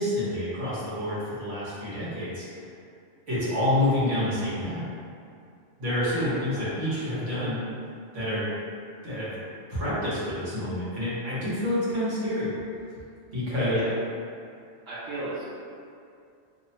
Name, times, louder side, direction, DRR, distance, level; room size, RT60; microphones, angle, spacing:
voice 1, 0.0-2.4 3.3-4.8 5.8-7.6 8.1-8.4 9.0-9.3 9.7-12.5 13.3-13.8, left 1 dB, 85° right, -11 dB, 1.3 m, -28 dB
voice 2, 6.2-6.7 13.7-14.0 14.9-15.4, right 2 dB, 65° right, -10 dB, 0.8 m, -36 dB
2.8 x 2.0 x 2.7 m, 2.4 s
omnidirectional pair, 1.2 m